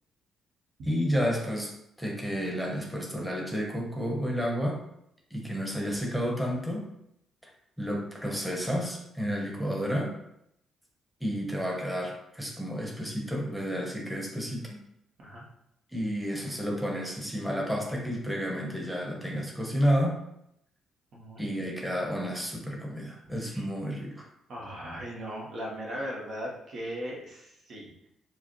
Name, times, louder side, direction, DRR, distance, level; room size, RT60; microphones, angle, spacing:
voice 1, 0.8-1.7 2.0-4.8 5.3-6.9 7.8-10.2 11.2-14.8 15.9-20.2 21.4-24.3, equal, ahead, -2 dB, 0.9 m, -31 dB
voice 2, 21.1-21.6 23.5-24.0 24.5-27.9, equal, 65° right, -3 dB, 1.1 m, -38 dB
4.7 x 2.0 x 3.0 m, 0.79 s
cardioid pair, 90°, 0 cm